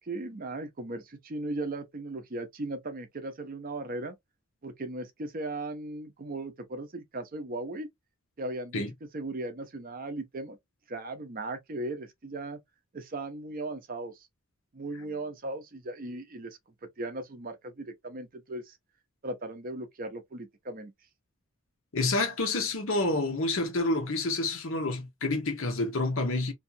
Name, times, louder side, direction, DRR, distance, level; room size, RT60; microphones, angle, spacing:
voice 1, 0.0-4.1 4.6-7.9 8.4-8.8 9.1-10.6 10.9-12.6 12.9-14.3 14.7-16.6 17.0-18.8 19.2-20.9, right 2 dB, 40° right, 0.5 m, -37 dB
voice 2, 21.9-26.5, left 2 dB, 60° left, 0.8 m, -28 dB
2.6 x 2.3 x 2.6 m
head